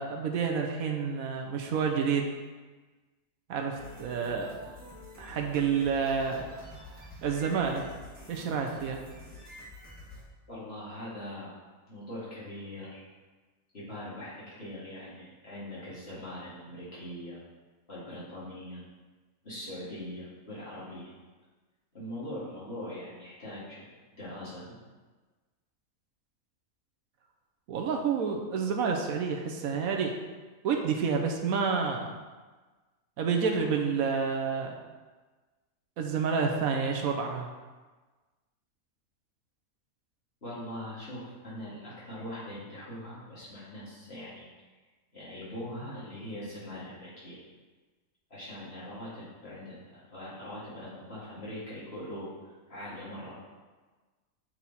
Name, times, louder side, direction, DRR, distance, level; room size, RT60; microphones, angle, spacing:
voice 1, 0.0-2.3 3.5-4.5 5.2-6.5 6.9-7.9 8.3-9.0 27.7-30.1 30.6-32.2 33.2-34.7 36.0-37.5, right 6 dB, 80° right, 2 dB, 1.1 m, -29 dB
sound 1, 3.7-10.2, left 1 dB, 10° left, 1.8 m, -48 dB
voice 2, 10.5-11.5 11.9-13.0 13.7-17.4 17.9-18.8 19.4-21.1 21.9-24.8 40.4-44.5 45.1-47.4 48.3-53.6, left 1 dB, 45° left, -10 dB, 2.6 m, -42 dB
7.5 x 4.3 x 4.1 m, 1.3 s
omnidirectional pair, 1.5 m